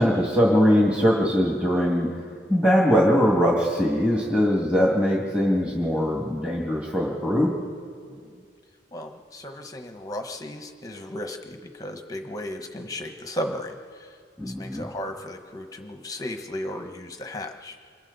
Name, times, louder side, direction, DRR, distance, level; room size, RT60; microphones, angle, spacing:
voice 1, 0.0-2.1 2.5-7.5 14.4-14.9, equal, 5° right, -3 dB, 2.2 m, -21 dB
voice 2, 8.9-13.8 14.4-17.8, left 1 dB, 20° left, 5 dB, 1.0 m, -35 dB
29.0 x 26.0 x 4.1 m, 2.1 s
head